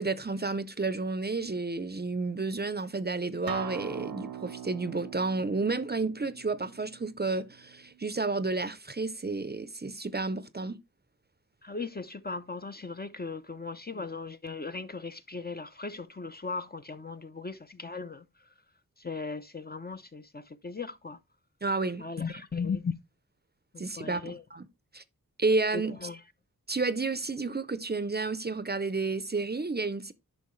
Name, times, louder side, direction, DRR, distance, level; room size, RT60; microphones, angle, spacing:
voice 1, 0.0-10.8 21.6-22.0 23.8-24.7 24.9-25.0 25.4-26.1 26.7-30.1, right 3 dB, 30° right, 0.6 m, -31 dB
Acoustic guitar, 3.5-8.7, right 9 dB, 85° right, 0.6 m, -43 dB
voice 2, 11.6-18.3 19.0-21.2 22.0-22.9 23.7-24.4 25.7-26.2, left 4 dB, 30° left, 0.5 m, -37 dB
10.5 x 5.4 x 3.1 m
wide cardioid pair, 65°, 35 cm